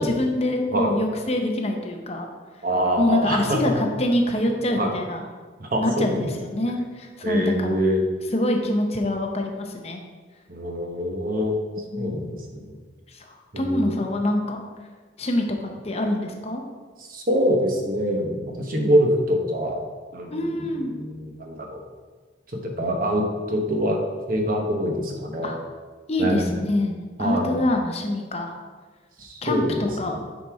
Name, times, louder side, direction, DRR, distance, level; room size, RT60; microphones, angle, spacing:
voice 1, 0.0-2.3 3.0-5.3 5.8-7.8 8.3-10.0 11.9-12.3 13.1-14.6 15.2-16.6 18.7-18.9 20.3-20.9 25.4-25.6 26.1-28.6 29.4-30.2, left 1 dB, 35° left, 3 dB, 0.8 m, -25 dB
voice 2, 2.6-3.7 4.7-4.9 5.6-6.3 7.2-8.0 10.5-11.6 12.0-12.8 13.5-13.9 17.0-19.8 20.1-21.8 22.5-24.0 24.3-25.5 26.2-26.5 27.2-27.5 29.2-30.2, equal, 45° right, 2 dB, 1.1 m, -25 dB
9.2 x 4.2 x 4.7 m, 1.4 s
head